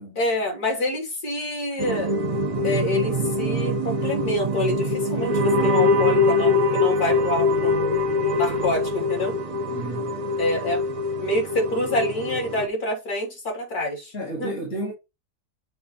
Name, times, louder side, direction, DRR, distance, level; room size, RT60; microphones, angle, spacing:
voice 1, 0.2-2.1 2.6-8.0 8.4-9.4 10.4-10.8 11.2-14.5, left 1 dB, 65° left, 3.5 m, -27 dB
sound 1, 1.8-12.7, left 2 dB, 40° right, 0.4 m, -23 dB
voice 2, 9.7-10.2 14.1-14.9, right 1 dB, 50° left, 2.2 m, -32 dB
7.9 x 3.1 x 4.3 m
omnidirectional pair, 1.7 m